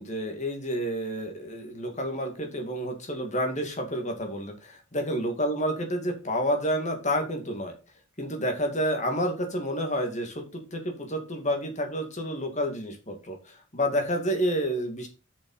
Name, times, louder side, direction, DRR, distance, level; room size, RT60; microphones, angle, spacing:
voice 1, 0.0-7.7 8.2-15.1, equal, 35° left, 4 dB, 2.3 m, -29 dB
7.3 x 6.1 x 5.6 m, 0.32 s
head